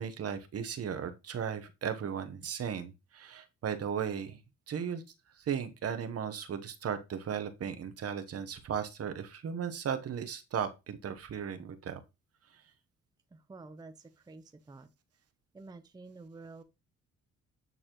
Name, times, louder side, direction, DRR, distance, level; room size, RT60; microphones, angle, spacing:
voice 1, 0.0-4.4 4.7-5.0 5.4-12.0, right 7 dB, 50° right, 1.0 m, -36 dB
voice 2, 13.3-14.9 15.5-16.6, right 3 dB, 15° right, 0.6 m, -50 dB
9.1 x 4.1 x 3.0 m
cardioid pair, 90°, 30 cm